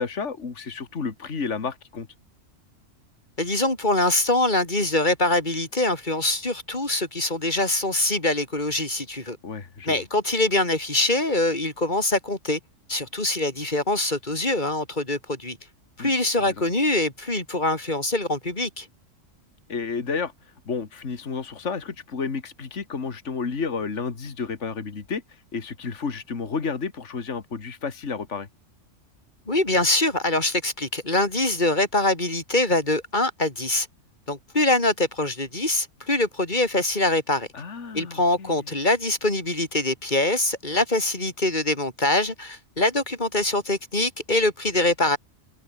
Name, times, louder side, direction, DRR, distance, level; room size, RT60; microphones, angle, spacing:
voice 1, 0.0-2.1 9.4-10.0 16.0-16.1 16.4-16.6 19.7-20.3 20.7-28.5 37.5-38.7, left 5 dB, 65° left, 2.3 m, -31 dB
voice 2, 3.4-9.4 9.9-12.6 12.9-15.6 16.0-18.9 29.5-33.9 34.3-37.5 37.9-45.2, left 2 dB, 35° left, 4.8 m, -24 dB
omnidirectional pair, 1.3 m